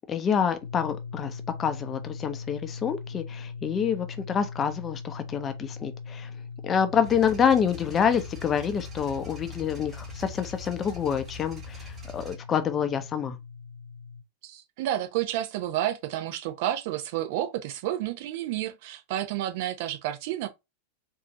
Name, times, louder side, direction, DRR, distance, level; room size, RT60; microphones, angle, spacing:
voice 1, 0.1-6.3 6.6-13.4, left 7 dB, 25° left, 0.6 m, -27 dB
sound 1, 0.6-14.2, left 5 dB, 75° left, 0.5 m, -41 dB
sound 2, 7.0-12.4, left 2 dB, 20° right, 2.5 m, -44 dB
voice 2, 14.4-20.5, right 12 dB, 50° right, 0.8 m, -30 dB
4.2 x 2.7 x 2.9 m
figure-of-eight pair, 90°, 0 cm